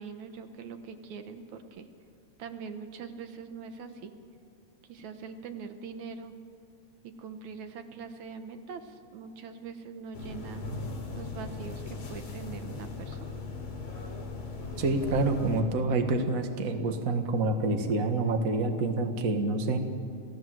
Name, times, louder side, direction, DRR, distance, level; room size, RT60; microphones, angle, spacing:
voice 1, 0.0-1.9 2.4-4.1 4.9-6.3 7.0-10.7 11.1-13.4, right 5 dB, 75° right, 8 dB, 2.6 m, -42 dB
sound 1, 10.1-15.6, left 3 dB, 80° left, 4.6 m, -38 dB
voice 2, 14.8-19.8, right 2 dB, 35° right, 5 dB, 1.6 m, -27 dB
28.5 x 17.0 x 7.8 m, 2.3 s
omnidirectional pair, 3.3 m